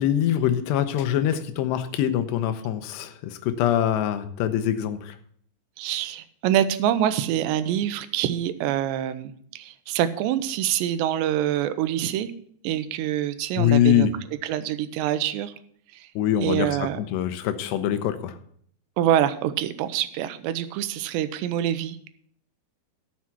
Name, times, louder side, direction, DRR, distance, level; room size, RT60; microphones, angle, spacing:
voice 1, 0.0-5.2 13.6-14.1 16.2-18.3, left 11 dB, 80° left, 10 dB, 2.9 m, -24 dB
voice 2, 5.8-12.3 12.6-14.1 14.4-15.5 15.9-16.1 16.4-17.0 19.0-22.0, right 11 dB, 90° right, 12 dB, 2.9 m, -25 dB
12.5 x 7.3 x 5.8 m, 0.63 s
omnidirectional pair, 5.0 m